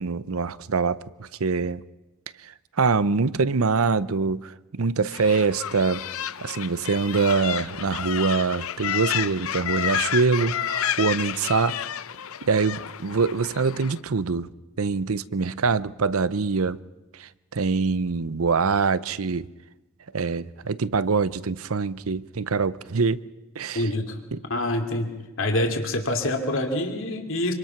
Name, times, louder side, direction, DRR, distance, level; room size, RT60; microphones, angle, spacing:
voice 1, 0.0-1.8 2.4-6.1 6.4-11.8 12.4-14.5 14.8-16.8 17.2-19.5 20.1-23.2 23.6-23.9 24.3-24.4, right 4 dB, 75° right, 0.7 m, -24 dB
sound 1, 5.1-14.0, left 9 dB, 75° left, 0.7 m, -30 dB
voice 2, 23.7-24.2 24.5-25.1 25.4-27.5, left 1 dB, 60° left, 2.9 m, -26 dB
26.5 x 25.0 x 5.9 m
head